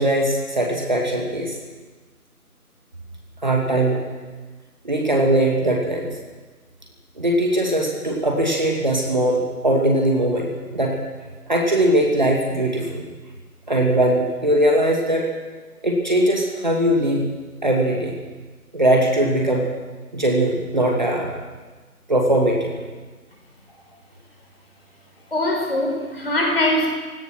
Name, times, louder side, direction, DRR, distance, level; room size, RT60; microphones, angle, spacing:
voice 1, 0.0-1.5 3.4-4.1 4.8-6.1 7.2-11.0 11.5-13.0 13.7-15.3 15.8-17.3 17.6-18.2 18.7-19.7 20.1-21.3 22.1-22.8, right 1 dB, 30° right, 0 dB, 2.4 m, -20 dB
voice 2, 25.3-26.9, left 1 dB, 40° left, 2 dB, 5.4 m, -21 dB
30.0 x 17.0 x 6.2 m, 1.3 s
figure-of-eight pair, 175°, 45 cm